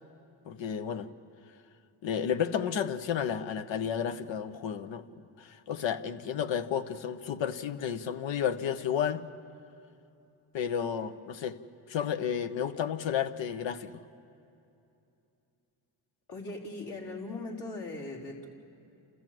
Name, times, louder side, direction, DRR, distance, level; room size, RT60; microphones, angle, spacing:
voice 1, 0.5-1.1 2.0-5.0 5.4-9.2 10.5-11.6 11.9-14.0, left 8 dB, 80° left, 1.0 m, -32 dB
voice 2, 16.3-18.5, left 2 dB, 60° left, 4.1 m, -39 dB
30.0 x 14.5 x 7.7 m
cardioid pair, 75°, 44 cm